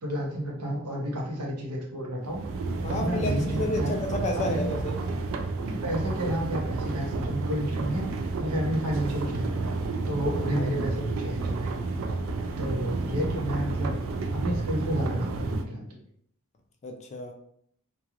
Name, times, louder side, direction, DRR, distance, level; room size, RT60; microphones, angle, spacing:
voice 1, 0.0-2.4 2.9-4.0 4.4-4.7 5.6-9.7 10.1-11.7 12.6-14.0 14.3-15.9, equal, 85° right, -1 dB, 0.8 m, -31 dB
sound 1, 2.2-15.6, right 3 dB, 60° right, 0.3 m, -31 dB
voice 2, 2.8-4.9 10.6-10.7 16.8-17.3, left 1 dB, 30° left, 3 dB, 0.4 m, -31 dB
3.0 x 2.3 x 2.4 m, 0.69 s
head